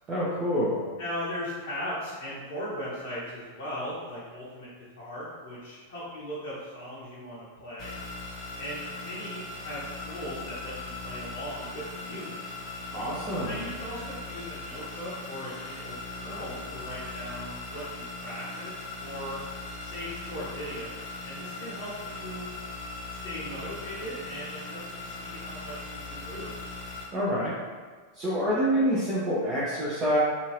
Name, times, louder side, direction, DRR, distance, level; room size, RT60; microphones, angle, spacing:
voice 1, 0.1-0.8 12.9-13.7 27.1-27.5 28.1-30.2, equal, 30° right, -8 dB, 0.6 m, -27 dB
voice 2, 1.0-4.7 4.9-7.9 8.6-12.4 13.5-19.4 19.8-22.5 23.2-26.5, equal, 50° left, -8 dB, 0.8 m, -38 dB
sound 1, 7.8-27.0, left 3 dB, 25° left, 0.9 m, -39 dB
2.7 x 2.6 x 3.1 m, 1.5 s
figure-of-eight pair, 90°, 0 cm